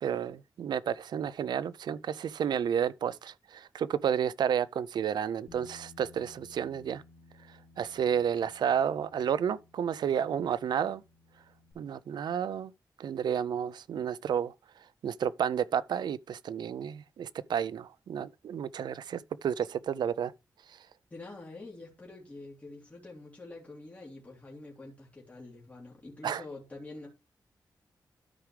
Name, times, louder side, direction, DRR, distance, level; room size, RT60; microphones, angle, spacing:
voice 1, 0.0-7.0 7.8-11.0 11.8-12.7 13.0-14.5 15.0-20.3 26.2-26.4, right 8 dB, 80° right, 0.4 m, -31 dB
Bass guitar, 5.5-11.7, left 3 dB, 70° left, 2.0 m, -58 dB
voice 2, 21.1-27.1, left 2 dB, 20° left, 3.0 m, -46 dB
12.5 x 4.9 x 3.3 m
wide cardioid pair, 135°, 7 cm